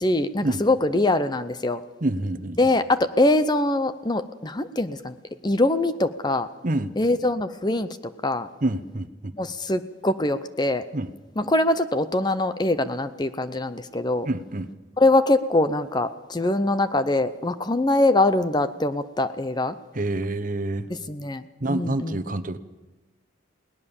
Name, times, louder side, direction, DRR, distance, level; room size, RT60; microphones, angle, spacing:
voice 1, 0.0-1.8 2.6-5.1 5.4-6.5 7.0-8.0 8.2-8.5 9.3-10.8 11.4-14.3 15.0-19.8 21.1-21.4 21.7-22.2, left 2 dB, 20° left, 12 dB, 0.7 m, -23 dB
voice 2, 2.0-2.6 6.6-6.9 8.6-9.3 10.9-11.1 14.2-14.7 19.9-20.9 21.6-22.6, right 2 dB, 40° right, 12 dB, 1.0 m, -27 dB
21.0 x 18.5 x 7.1 m, 1.1 s
head